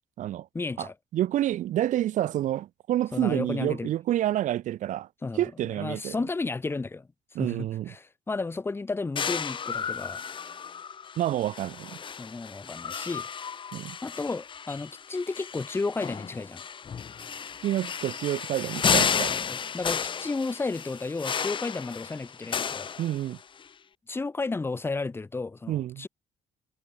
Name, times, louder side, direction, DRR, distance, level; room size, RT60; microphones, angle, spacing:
voice 1, 0.5-0.9 3.1-3.9 5.2-5.4 5.7-7.1 7.4-10.2 12.2-13.3 14.0-16.6 19.5-22.9 24.1-26.1, left 3 dB, 15° left, 2.1 m, -33 dB
voice 2, 1.1-5.1 5.4-6.2 7.4-7.9 11.2-12.0 13.7-14.0 17.6-19.4 23.0-23.4 25.7-26.1, right 13 dB, 70° right, 2.1 m, -28 dB
sound 1, 9.2-23.6, left 7 dB, 40° left, 3.3 m, -33 dB
cardioid pair, 135°, 13 cm